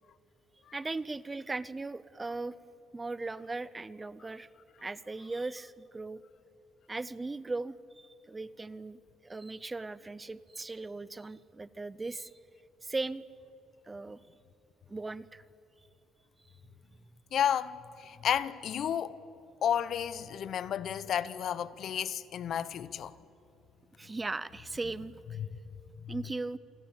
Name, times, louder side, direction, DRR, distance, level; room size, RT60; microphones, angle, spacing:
voice 1, 0.7-2.6 2.9-4.5 4.8-6.2 6.9-12.3 12.8-13.2 13.9-14.2 14.9-15.4 24.0-25.4 26.1-26.6, right 3 dB, 15° right, 0.6 m, -38 dB
voice 2, 17.3-19.2 19.6-23.2 24.8-24.9 25.3-25.5 26.0-26.3, left 9 dB, 55° left, 0.8 m, -32 dB
27.5 x 20.5 x 8.9 m
cardioid pair, 130°, 0 cm